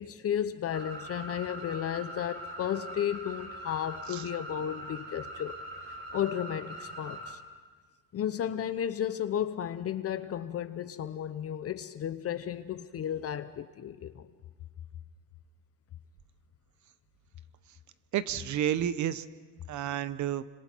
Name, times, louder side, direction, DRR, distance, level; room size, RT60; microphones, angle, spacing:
voice 1, 0.0-5.6 6.1-7.4 8.1-14.3, left 10 dB, 45° left, 0.9 m, -33 dB
sound 1, 0.7-7.3, right 1 dB, 40° right, 5.5 m, -42 dB
voice 2, 18.1-19.2 19.7-20.4, right 10 dB, 60° right, 1.0 m, -30 dB
30.0 x 26.0 x 4.6 m
cardioid pair, 125°, 33 cm